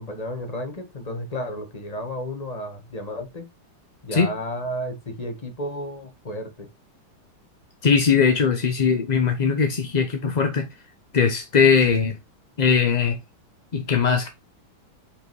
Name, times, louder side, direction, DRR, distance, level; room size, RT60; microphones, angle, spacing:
voice 1, 0.0-3.5 4.0-6.7, equal, 25° left, 1.2 m, -32 dB
voice 2, 7.8-10.6 11.1-12.2 12.6-13.2 13.7-14.3, left 6 dB, 45° left, 0.5 m, -20 dB
5.4 x 5.2 x 4.6 m
omnidirectional pair, 2.0 m